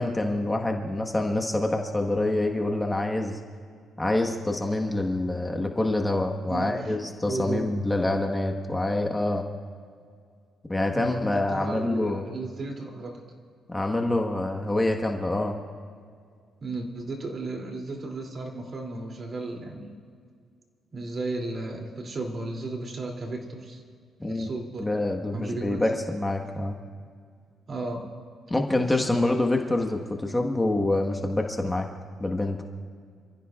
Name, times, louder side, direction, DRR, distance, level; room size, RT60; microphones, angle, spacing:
voice 1, 0.0-3.4 4.0-9.4 10.7-12.3 13.7-15.6 24.2-24.5 24.8-26.7 28.5-31.9 32.2-32.6, left 2 dB, 15° left, 2 dB, 1.5 m, -26 dB
voice 2, 6.5-6.9 7.2-7.7 10.9-13.2 16.6-20.0 20.9-23.8 24.2-24.9 25.3-25.8 27.7-28.1 28.8-29.2, right 2 dB, 45° right, 1 dB, 3.0 m, -34 dB
28.5 x 15.0 x 2.5 m, 2.1 s
cardioid pair, 90°, 0 cm